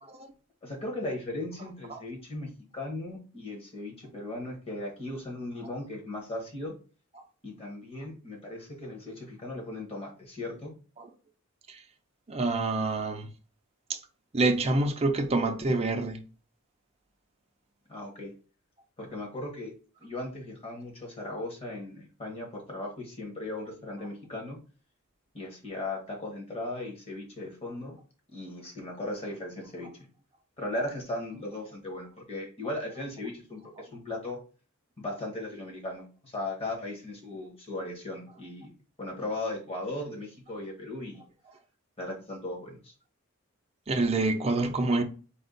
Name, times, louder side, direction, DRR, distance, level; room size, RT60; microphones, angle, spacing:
voice 1, 0.6-6.7 7.4-10.7 17.9-18.3 19.0-19.7 20.0-24.6 25.3-28.0 28.3-29.9 30.6-34.4 35.0-38.7 39.0-41.2 42.0-42.9, left 2 dB, 30° left, 1.4 m, -37 dB
voice 2, 12.3-13.3 13.9-14.0 14.3-16.2 43.9-45.0, right 2 dB, 30° right, 0.6 m, -26 dB
4.3 x 2.4 x 3.9 m
head